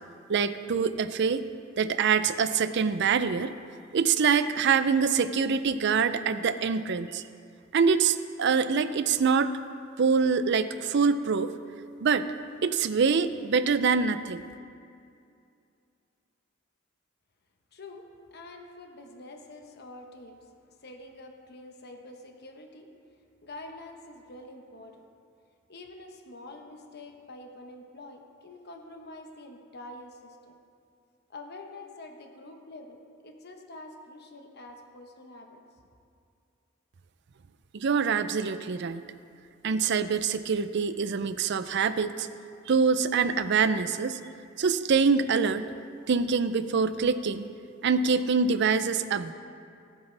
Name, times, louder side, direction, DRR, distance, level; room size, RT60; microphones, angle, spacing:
voice 1, 0.3-1.4 1.8-3.5 3.9-7.2 7.7-9.5 10.0-11.5 12.0-12.3 12.6-14.4 37.7-39.0 39.6-42.3 42.7-44.2 44.6-45.7 46.1-47.4 47.8-49.3, right 5 dB, 60° right, 12 dB, 0.5 m, -25 dB
voice 2, 17.7-20.5 20.8-22.9 23.4-25.0 25.7-30.6 31.3-33.0 33.2-35.6, left 2 dB, 55° left, 3 dB, 1.2 m, -46 dB
18.5 x 8.2 x 3.4 m, 2.5 s
head